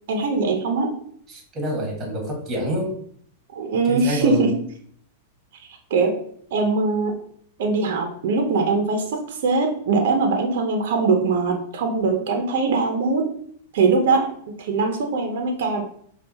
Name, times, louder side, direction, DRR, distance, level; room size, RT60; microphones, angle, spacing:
voice 1, 0.1-0.9 3.5-4.5 5.9-6.1 6.5-7.2 7.6-13.3 13.7-15.8, right 4 dB, 65° right, 3 dB, 0.7 m, -21 dB
voice 2, 1.3-2.9 3.8-4.5, equal, 25° right, 0 dB, 1.7 m, -26 dB
5.3 x 2.4 x 2.8 m, 0.63 s
hypercardioid pair, 130°, 0 cm